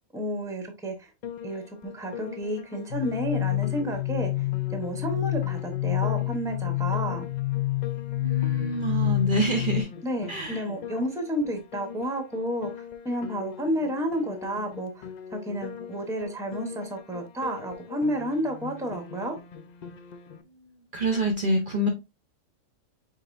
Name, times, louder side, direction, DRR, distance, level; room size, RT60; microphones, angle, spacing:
voice 1, 0.1-1.1 1.4-4.4 4.7-7.3 10.0-12.7 13.0-19.4, equal, 5° right, 0.8 m, -31 dB
Piano, 1.2-20.4, left 8 dB, 90° left, 0.3 m, -42 dB
sound 1, 2.9-9.8, left 19 dB, 65° left, 0.8 m, -28 dB
voice 2, 8.2-9.9 10.3-10.7 20.6-21.9, right 1 dB, 45° right, 0.8 m, -27 dB
5.2 x 4.0 x 2.5 m
omnidirectional pair, 1.4 m